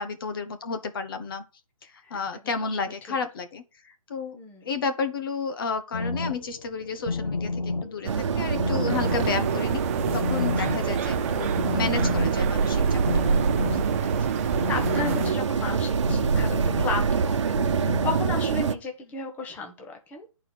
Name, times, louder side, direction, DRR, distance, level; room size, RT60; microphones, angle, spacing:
voice 1, 0.0-1.4 1.9-9.8 10.1-13.2, left 4 dB, 40° left, 1.2 m, -32 dB
voice 2, 4.3-4.7 10.7-10.8 13.6-14.4 14.7-17.6 18.0-20.3, left 3 dB, 10° left, 1.2 m, -34 dB
sound 1, 5.9-18.7, left 3 dB, 80° left, 1.9 m, -32 dB
sound 2, 8.0-18.7, right 5 dB, 55° right, 1.1 m, -25 dB
sound 3, 8.9-15.3, right 9 dB, 25° right, 0.6 m, -34 dB
9.7 x 4.6 x 6.1 m
hypercardioid pair, 160°, 17 cm